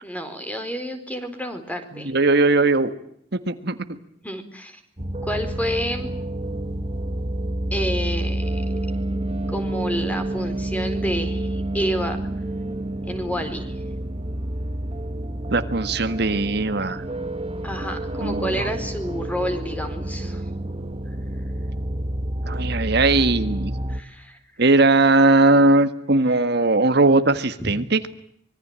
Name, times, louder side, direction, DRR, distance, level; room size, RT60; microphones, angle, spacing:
voice 1, 0.0-2.1 4.2-4.8 5.2-6.1 7.7-8.6 9.5-12.2 13.1-13.7 17.6-20.4 23.9-24.4 27.6-27.7, equal, 10° left, 8 dB, 4.4 m, -29 dB
voice 2, 1.9-2.9 3.3-3.8 15.5-17.0 18.2-18.7 22.5-23.7 24.6-28.1, right 2 dB, 60° right, 9 dB, 1.7 m, -19 dB
sound 1, 5.0-24.0, right 1 dB, 30° right, 1.8 m, -29 dB
25.5 x 22.5 x 9.0 m, 0.71 s
head